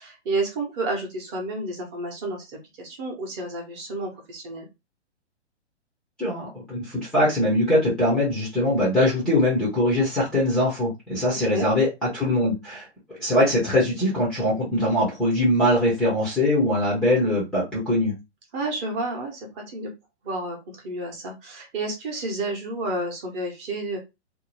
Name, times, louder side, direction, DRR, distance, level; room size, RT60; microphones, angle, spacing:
voice 1, 0.0-4.7 11.3-11.7 18.5-19.9 20.2-20.6 20.8-24.0, right 2 dB, 25° right, 1 dB, 0.8 m, -30 dB
voice 2, 6.2-12.9 13.2-18.1, left 1 dB, ahead, -6 dB, 0.5 m, -22 dB
2.6 x 2.1 x 3.0 m, 0.24 s
hypercardioid pair, 140°, 35 cm